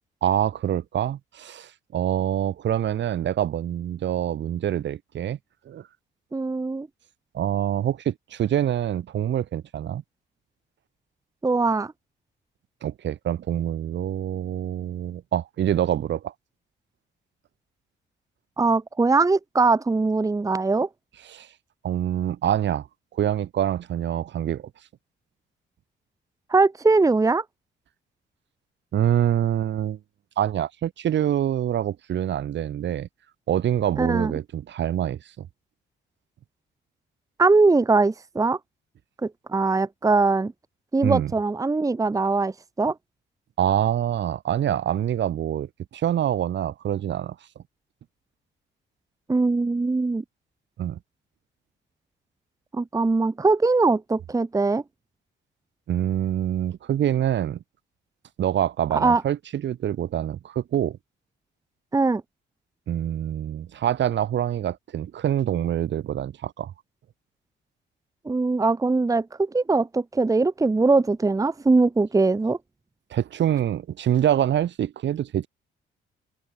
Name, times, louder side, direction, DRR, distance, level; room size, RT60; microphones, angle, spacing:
voice 1, 0.2-5.4 5.7-5.8 7.3-10.0 12.8-16.3 21.3-21.5 21.8-22.9 23.1-24.7 28.9-30.0 30.4-33.1 33.5-35.5 41.0-41.3 43.6-47.4 50.8-51.0 55.9-57.6 58.4-61.0 62.9-66.7 73.1-75.5, right 10 dB, 65° right, 2.2 m, -25 dB
voice 2, 6.3-6.9 11.4-11.9 18.6-20.9 26.5-27.4 34.0-34.3 37.4-38.6 39.2-40.5 40.9-42.9 49.3-50.2 52.7-54.8 58.9-59.2 61.9-62.2 68.2-72.6, right 3 dB, 15° right, 1.0 m, -21 dB
cardioid pair, 90°, 20 cm